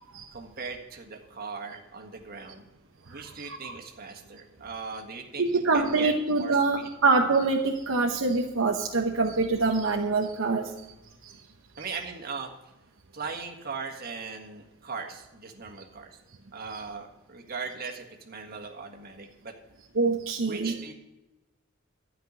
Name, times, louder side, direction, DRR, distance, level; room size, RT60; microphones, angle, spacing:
voice 1, 0.3-2.7 3.1-6.9 11.8-12.5 13.1-16.2 16.5-19.5 20.4-20.9, right 4 dB, 45° right, 2 dB, 1.7 m, -39 dB
voice 2, 3.1-3.7 5.4-10.8 11.2-11.4 19.9-20.7, right 3 dB, 70° right, 1 dB, 0.9 m, -25 dB
12.5 x 5.9 x 9.5 m, 0.99 s
head